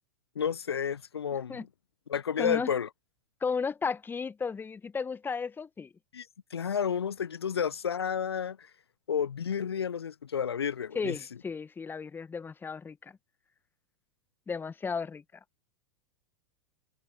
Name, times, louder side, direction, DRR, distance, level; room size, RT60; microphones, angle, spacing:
voice 1, 0.4-1.7 2.1-2.9 6.1-6.3 6.5-8.7 9.1-11.2, left 7 dB, 85° left, 0.4 m, -31 dB
voice 2, 2.4-2.7 3.4-5.9 10.9-13.1 14.5-15.2, left 5 dB, 15° left, 1.1 m, -34 dB
hypercardioid pair, 95°, 13 cm